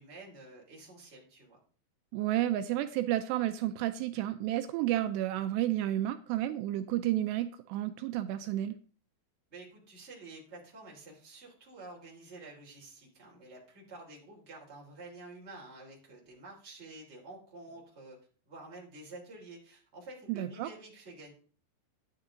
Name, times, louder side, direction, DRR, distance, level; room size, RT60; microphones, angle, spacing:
voice 1, 0.0-1.6 9.5-18.2 18.5-21.3, right 2 dB, 20° right, -2 dB, 2.7 m, -49 dB
voice 2, 2.1-8.8 20.3-20.7, right 13 dB, 85° right, 9 dB, 2.7 m, -31 dB
10.5 x 9.7 x 3.7 m, 0.40 s
omnidirectional pair, 5.0 m